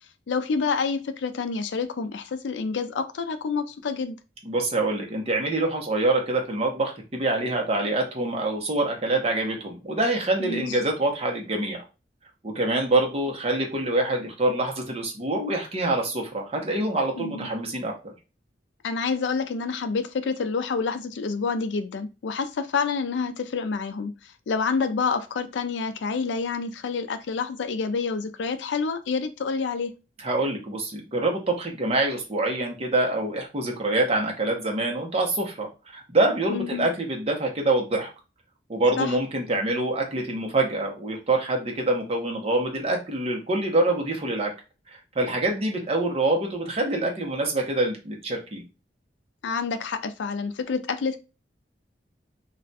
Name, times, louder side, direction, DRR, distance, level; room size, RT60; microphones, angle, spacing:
voice 1, 0.3-4.2 10.4-10.7 17.2-17.5 18.8-24.1 24.5-29.9 36.5-36.9 39.0-39.2 49.4-51.2, left 5 dB, 85° left, 0.4 m, -28 dB
voice 2, 4.4-11.8 12.4-18.1 30.2-35.7 35.9-38.1 38.7-44.5 44.9-48.6, right 2 dB, 35° right, 0.8 m, -25 dB
2.4 x 2.2 x 3.9 m
head